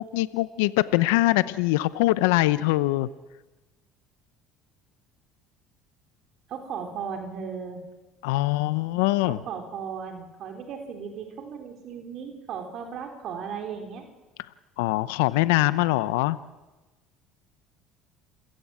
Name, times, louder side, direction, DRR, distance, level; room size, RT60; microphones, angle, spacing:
voice 1, 0.0-3.1 8.2-9.4 14.8-16.4, left 18 dB, 85° left, 16 dB, 0.7 m, -23 dB
voice 2, 6.5-7.8 9.3-14.1, right 6 dB, 60° right, 4 dB, 3.7 m, -36 dB
28.0 x 15.5 x 8.8 m, 1.2 s
supercardioid pair, 95°, 0 cm